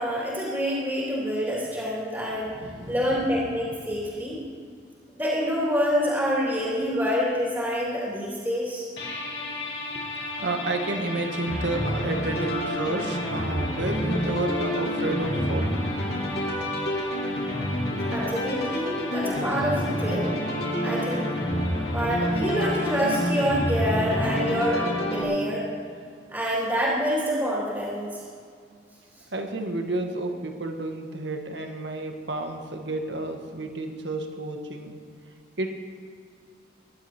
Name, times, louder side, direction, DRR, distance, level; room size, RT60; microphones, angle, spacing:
voice 1, 0.0-2.6 2.9-4.4 5.1-8.9 18.1-20.4 20.8-21.2 21.9-25.6 26.3-28.2, equal, 15° right, -6 dB, 3.0 m, -27 dB
voice 2, 2.4-3.2 10.4-16.1 17.9-18.0 21.1-21.2 29.3-34.9 35.6-35.7, right 2 dB, 85° right, 4 dB, 1.7 m, -31 dB
sound 1, 9.0-25.2, equal, 65° left, 3.6 m, -28 dB
22.0 x 11.0 x 4.4 m, 2.2 s
head